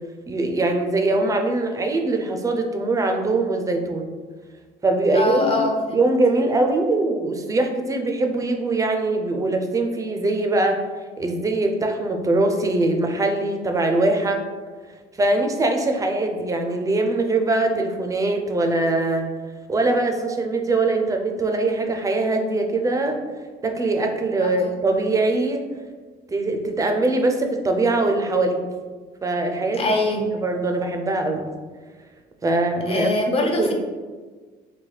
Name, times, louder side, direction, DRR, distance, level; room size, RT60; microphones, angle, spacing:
voice 1, 0.3-4.1 4.8-5.6 5.9-10.8 11.2-14.4 15.2-19.2 19.7-23.2 23.6-25.6 26.3-28.6 29.2-29.8 30.3-31.4 32.4-33.1 33.4-33.7, right 2 dB, 20° right, 4 dB, 0.4 m, -22 dB
voice 2, 5.1-6.0 24.4-24.7 29.8-30.2 32.9-33.7, left 2 dB, 35° left, 2 dB, 0.6 m, -23 dB
3.3 x 2.2 x 3.9 m, 1.4 s
cardioid pair, 110°, 17 cm